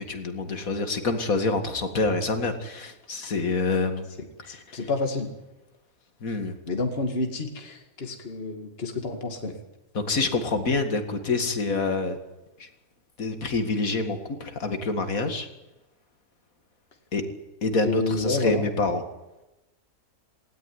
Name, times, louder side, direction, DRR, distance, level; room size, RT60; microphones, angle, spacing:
voice 1, 0.0-4.1 4.4-4.8 6.2-6.6 9.9-12.2 12.6-12.7 13.2-15.5 17.1-17.2 17.6-19.0, left 3 dB, 65° left, 7 dB, 2.5 m, -27 dB
voice 2, 4.5-5.3 6.7-9.6 17.8-18.7, left 2 dB, 40° left, 4 dB, 2.3 m, -29 dB
18.5 x 17.5 x 9.7 m, 1.0 s
omnidirectional pair, 1.6 m